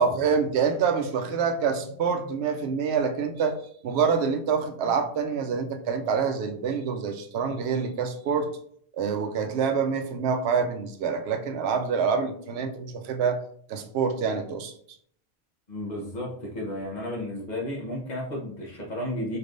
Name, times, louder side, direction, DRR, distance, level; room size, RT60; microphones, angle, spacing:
voice 1, 0.0-3.6 3.8-8.5 9.0-13.4 13.7-14.7, right 6 dB, 85° right, 7 dB, 0.9 m, -26 dB
voice 2, 15.7-19.4, left 1 dB, 45° left, -2 dB, 1.1 m, -33 dB
4.6 x 3.4 x 2.5 m, 0.63 s
omnidirectional pair, 1.1 m